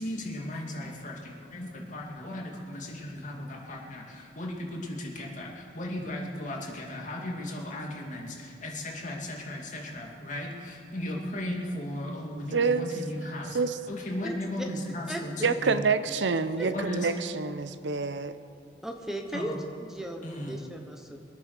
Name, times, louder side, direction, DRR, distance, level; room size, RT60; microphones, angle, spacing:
voice 1, 0.0-13.6 13.9-15.9 16.7-17.1 19.3-19.6 20.2-20.6, left 1 dB, 45° left, -1 dB, 2.5 m, -36 dB
voice 2, 12.5-12.9 13.5-13.7 15.4-18.4, right 4 dB, 85° right, 12 dB, 0.7 m, -27 dB
voice 3, 14.2-14.7 15.1-15.2 16.6-16.7 18.8-19.5 19.8-21.2, right 1 dB, 5° right, 3 dB, 1.0 m, -36 dB
23.0 x 9.2 x 6.7 m, 2.5 s
head